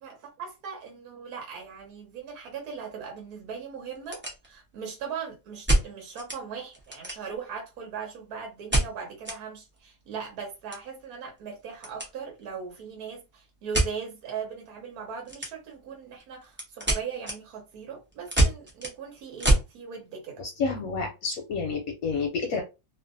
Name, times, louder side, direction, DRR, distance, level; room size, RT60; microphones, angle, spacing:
voice 1, 0.0-20.4, right 6 dB, 70° right, 1.2 m, -39 dB
sound 1, 1.6-1.8 2.2-2.3 2.9-3.0 3.2-3.3 3.8-4.8 5.7-6.4 6.7-7.5 8.7-9.4 9.7-9.8 10.1-12.1 12.4-12.7 13.7-13.9 15.3-15.8 16.2-19.7, right 1 dB, 15° right, 0.3 m, -27 dB
voice 2, 20.4-22.6, left 4 dB, 70° left, 0.9 m, -29 dB
2.7 x 2.5 x 2.5 m
omnidirectional pair, 1.7 m